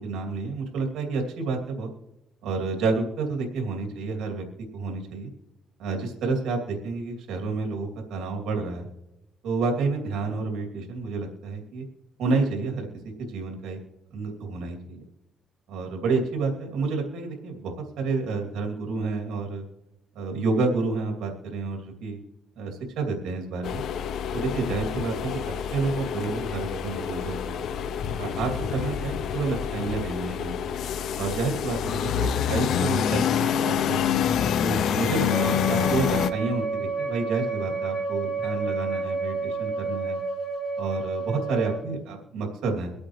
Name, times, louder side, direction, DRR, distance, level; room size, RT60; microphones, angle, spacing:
voice 1, 0.0-1.9 2.4-4.4 4.7-5.3 5.8-8.9 9.4-11.8 12.2-12.9 13.2-13.8 14.1-15.0 15.7-19.6 20.1-22.2 22.6-23.8 24.3-25.4 25.7-27.6 28.2-30.7 31.2-34.1 34.6-40.2 40.8-42.9, right 3 dB, 85° right, 3 dB, 2.6 m, -29 dB
sound 1, 23.6-36.3, left 8 dB, 75° left, 0.5 m, -27 dB
Wind instrument woodwind instrument, 35.3-41.8, right 3 dB, 45° left, 3.5 m, -30 dB
24.0 x 8.5 x 3.2 m, 0.91 s
cardioid pair, 90°, 0 cm